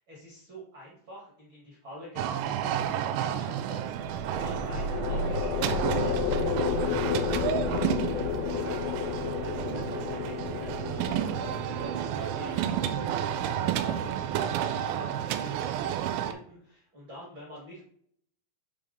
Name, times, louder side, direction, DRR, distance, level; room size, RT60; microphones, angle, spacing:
voice 1, 0.0-17.8, equal, 55° right, -5 dB, 1.3 m, -47 dB
sound 1, 2.2-16.3, right 10 dB, 85° right, 3.0 m, -31 dB
sound 2, 4.0-15.4, left 7 dB, 90° left, 3.1 m, -33 dB
6.9 x 3.4 x 5.1 m, 0.63 s
omnidirectional pair, 5.5 m